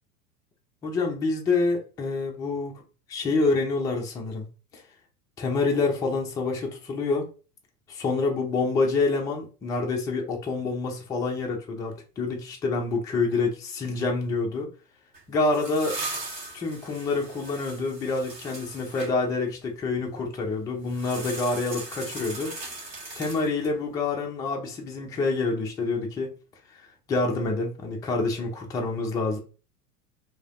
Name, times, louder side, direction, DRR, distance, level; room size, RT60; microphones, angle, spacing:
voice 1, 0.8-2.8 3.1-4.5 4.7-4.8 5.4-7.3 7.9-14.7 15.3-16.0 16.5-22.5 23.2-26.3 27.1-29.4, left 3 dB, 10° left, 0.4 m, -27 dB
sound 1, 15.1-19.1 20.9-23.8, right 2 dB, 85° right, 1.5 m, -38 dB
4.8 x 2.8 x 2.5 m
figure-of-eight pair, 95°, 49 cm